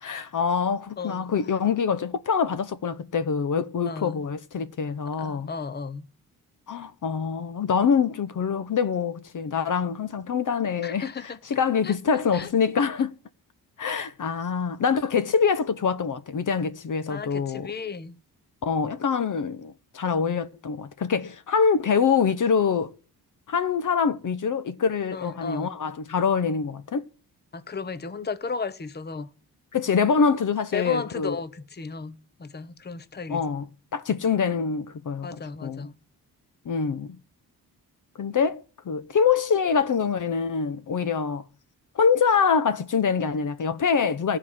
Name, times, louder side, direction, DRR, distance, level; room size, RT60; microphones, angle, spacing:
voice 1, 0.0-5.5 6.7-11.1 11.5-13.2 13.8-17.7 18.6-22.9 23.5-27.0 29.7-31.3 33.3-33.7 33.9-35.9 36.7-37.2 38.2-41.4 41.9-44.4, left 6 dB, 50° left, 1.0 m, -25 dB
voice 2, 1.0-1.3 1.6-1.7 3.9-4.2 5.1-6.1 10.8-11.4 11.8-11.9 12.3-12.5 17.1-18.2 25.1-25.8 27.5-29.3 30.7-33.4 35.2-35.9, left 5 dB, 25° left, 0.9 m, -34 dB
14.0 x 4.9 x 7.3 m
cardioid pair, 65°, 39 cm